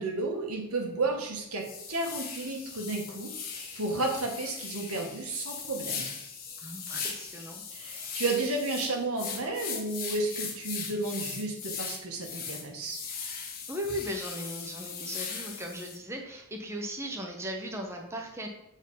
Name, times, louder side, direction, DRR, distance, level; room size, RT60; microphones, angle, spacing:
voice 1, 0.0-3.3 3.7-6.1 7.7-13.0, right 2 dB, 80° right, 2 dB, 1.6 m, -32 dB
sound 1, 1.0-1.1 1.6-16.0, left 6 dB, 40° left, 1.4 m, -39 dB
voice 2, 6.6-8.2 13.7-18.5, equal, 10° right, 1 dB, 0.8 m, -38 dB
7.8 x 4.5 x 5.5 m, 0.82 s
head